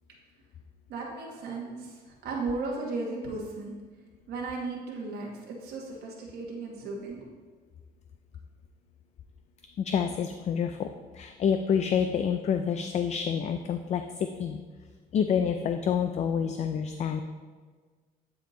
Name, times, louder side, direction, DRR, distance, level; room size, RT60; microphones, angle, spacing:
voice 1, 0.9-3.7 4.3-7.3, right 3 dB, 75° right, -2 dB, 1.1 m, -35 dB
voice 2, 9.8-10.9 11.1-14.6 15.1-17.2, left 7 dB, 40° left, 7 dB, 0.4 m, -28 dB
9.2 x 3.5 x 3.8 m, 1.4 s
cardioid pair, 110°, 17 cm